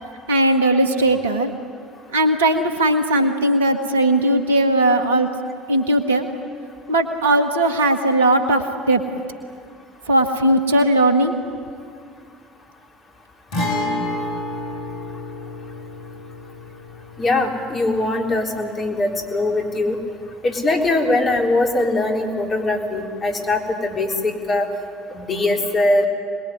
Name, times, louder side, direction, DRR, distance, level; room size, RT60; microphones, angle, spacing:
voice 1, 0.3-1.5 2.1-5.3 5.7-6.3 6.9-9.0 10.1-11.3, right 1 dB, 75° right, 6 dB, 1.8 m, -18 dB
Guitar, 13.5-21.1 21.4-21.5 23.5-23.6, left 1 dB, 55° left, 5.4 m, -31 dB
voice 2, 17.2-20.0 20.4-24.7 25.1-26.1, left 2 dB, 35° left, 1 dB, 4.1 m, -21 dB
26.5 x 20.5 x 9.6 m, 2.3 s
figure-of-eight pair, 60°, 0 cm